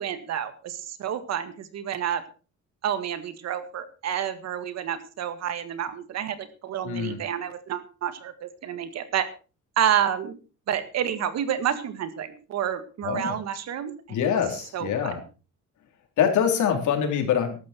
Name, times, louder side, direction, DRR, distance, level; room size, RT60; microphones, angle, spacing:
voice 1, 0.0-2.2 2.8-9.3 9.8-10.4 10.7-14.4 14.7-15.2, right 9 dB, 60° right, 11 dB, 1.9 m, -29 dB
voice 2, 6.8-7.2 13.0-13.3 14.1-15.2 16.2-17.6, left 8 dB, 70° left, 4 dB, 3.8 m, -24 dB
15.0 x 12.5 x 4.5 m, 0.34 s
cardioid pair, 165°, 31 cm